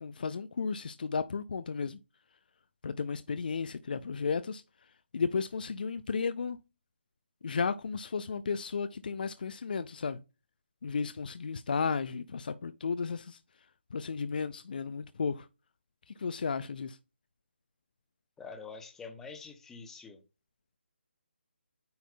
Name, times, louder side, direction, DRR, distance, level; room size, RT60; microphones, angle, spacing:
voice 1, 0.0-2.0 2.8-4.6 5.1-6.6 7.4-10.2 10.8-13.4 13.9-15.5 16.1-17.0, left 5 dB, 50° left, 0.4 m, -33 dB
voice 2, 18.4-20.2, left 5 dB, 5° left, 0.8 m, -46 dB
9.4 x 5.7 x 2.2 m
figure-of-eight pair, 150°, 6 cm